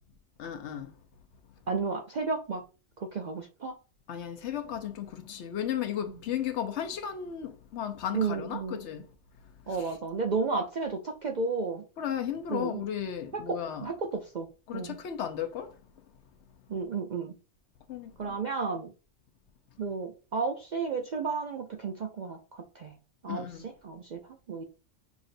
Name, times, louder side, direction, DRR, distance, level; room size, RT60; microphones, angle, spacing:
voice 1, 0.4-0.9 4.1-9.1 9.8-9.9 12.0-13.9 14.7-15.7 17.9-18.3 23.3-23.7, left 9 dB, 70° left, 0.9 m, -35 dB
voice 2, 1.7-2.6 3.0-3.7 8.1-8.8 9.7-11.8 12.5-12.8 13.3-14.5 14.7-15.0 16.7-17.4 18.2-18.9 19.8-23.0 23.2-24.2 24.5-24.6, right 4 dB, 60° right, 0.4 m, -32 dB
6.0 x 2.6 x 2.5 m
omnidirectional pair, 1.3 m